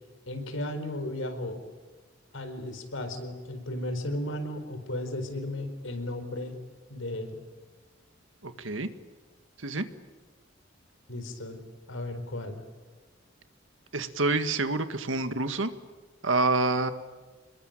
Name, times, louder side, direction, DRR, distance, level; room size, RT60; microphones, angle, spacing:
voice 1, 0.3-1.6 2.3-6.6 6.9-7.4 11.1-11.6 11.9-12.6, left 1 dB, 85° left, 8 dB, 4.5 m, -35 dB
voice 2, 8.4-8.9 9.6-9.9 13.9-15.7 16.2-16.9, right 2 dB, 80° right, 10 dB, 1.9 m, -27 dB
27.5 x 21.5 x 9.1 m, 1.4 s
head